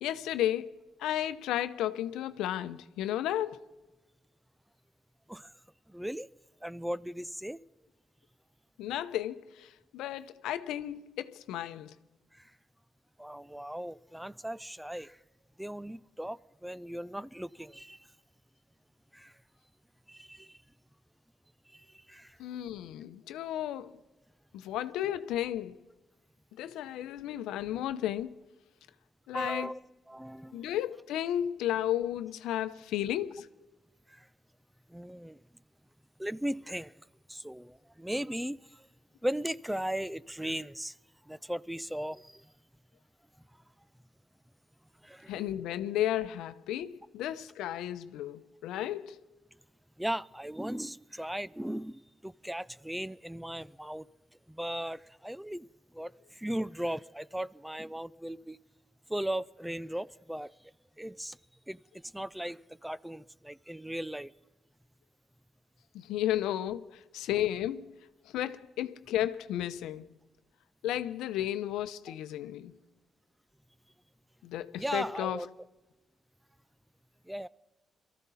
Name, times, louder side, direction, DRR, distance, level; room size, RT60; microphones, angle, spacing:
voice 1, 0.0-3.6 8.8-11.9 22.4-23.9 24.5-25.8 26.6-28.4 29.3-29.7 30.5-33.5 45.3-49.2 65.9-68.0 68.3-70.1 70.8-72.7 74.4-75.4, left 12 dB, 90° left, 0.7 m, -33 dB
voice 2, 5.9-6.3 6.6-7.6 13.2-15.2 15.6-18.0 19.1-19.3 20.1-20.5 21.7-22.4 29.3-29.8 30.1-30.7 34.1-34.2 34.9-35.4 36.2-36.9 37.3-38.6 39.2-40.9 41.3-42.3 45.0-45.4 50.0-54.0 54.5-55.7 55.9-58.6 59.1-60.5 61.0-61.4 61.7-61.8 62.1-64.3 72.1-72.2 74.8-75.5 77.3-77.5, right 1 dB, 5° right, 0.4 m, -37 dB
23.0 x 14.0 x 4.2 m
cardioid pair, 90°, 0 cm